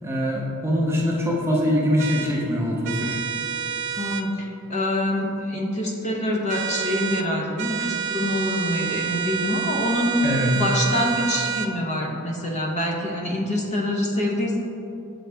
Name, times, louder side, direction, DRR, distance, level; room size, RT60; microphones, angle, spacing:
voice 1, 0.0-3.2 10.2-10.5, equal, 10° right, -3 dB, 0.7 m, -23 dB
sound 1, 2.0-2.3 2.8-4.3 6.5-7.3 7.6-11.7, right 8 dB, 55° right, 0.3 m, -28 dB
voice 2, 4.0-10.1 10.5-14.6, left 1 dB, 30° left, -2 dB, 0.8 m, -25 dB
7.6 x 3.9 x 3.4 m, 2.8 s
head